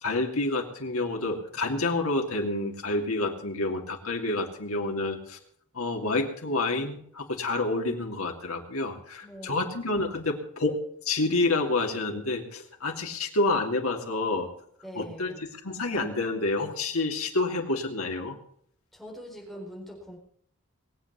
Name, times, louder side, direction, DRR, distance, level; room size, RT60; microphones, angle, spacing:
voice 1, 0.0-5.4 5.7-10.8 11.0-14.5 14.9-18.4, left 2 dB, 85° left, 2 dB, 2.7 m, -28 dB
voice 2, 9.2-9.7 14.8-15.4 18.9-20.2, equal, ahead, -2 dB, 4.4 m, -42 dB
21.5 x 8.1 x 7.1 m, 0.64 s
head